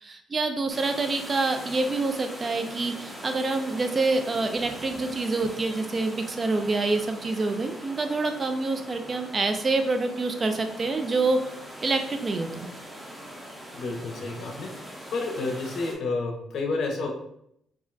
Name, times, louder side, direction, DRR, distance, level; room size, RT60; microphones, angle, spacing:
voice 1, 0.0-11.4 11.8-12.7, right 3 dB, 35° right, 6 dB, 0.4 m, -26 dB
sound 1, 0.7-16.0, equal, 10° right, 0.8 m, -42 dB
voice 2, 13.7-14.7 15.1-17.2, left 3 dB, 65° left, 2 dB, 0.6 m, -30 dB
2.4 x 2.1 x 3.7 m, 0.74 s
cardioid pair, 90°, 0 cm